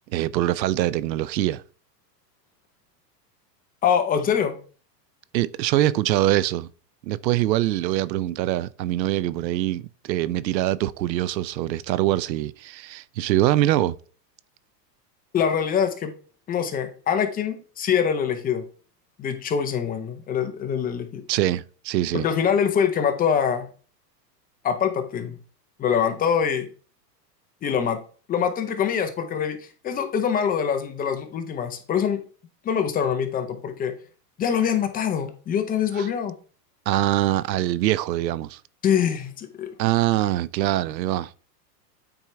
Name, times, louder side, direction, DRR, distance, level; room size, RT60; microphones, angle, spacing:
voice 1, 0.1-1.6 5.3-6.7 7.0-14.0 21.3-22.3 36.0-36.1 36.9-38.6 39.8-41.3, right 14 dB, 90° right, 0.6 m, -23 dB
voice 2, 3.8-4.6 15.3-16.1 16.5-18.6 19.2-21.2 22.1-23.7 24.6-25.4 25.8-26.7 27.6-28.0 28.3-29.6 29.8-32.2 32.6-33.9 34.4-36.3 38.8-39.7, left 7 dB, 20° left, 0.6 m, -24 dB
8.7 x 4.5 x 3.3 m
supercardioid pair, 130°, 50 cm